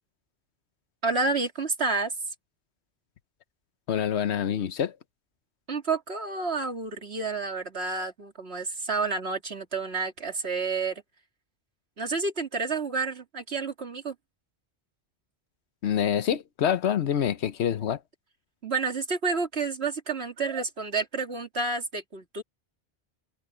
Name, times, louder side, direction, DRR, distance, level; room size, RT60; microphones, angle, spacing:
voice 1, 1.0-2.1 5.7-11.0 12.0-14.1 18.6-22.4, right 4 dB, 75° right, 2.9 m, -30 dB
voice 2, 3.9-5.0 15.8-18.0, left 9 dB, 85° left, 1.1 m, -26 dB
open air
omnidirectional pair, 1.1 m